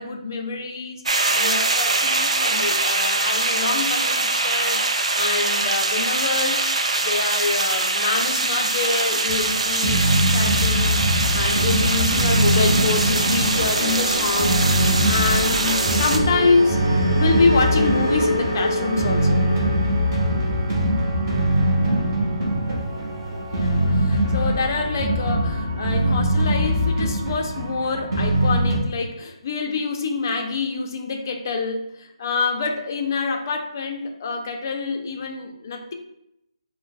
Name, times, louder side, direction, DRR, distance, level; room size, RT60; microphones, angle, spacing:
voice 1, 0.0-6.7 7.0-16.8 17.1-19.4 23.3-35.9, left 4 dB, 30° left, 3 dB, 0.4 m, -26 dB
sound 1, 1.1-16.2, right 3 dB, 75° right, 0.4 m, -23 dB
sound 2, 9.3-28.8, equal, 25° right, 1.0 m, -22 dB
3.3 x 2.0 x 3.9 m, 0.81 s
hypercardioid pair, 170°, 3 cm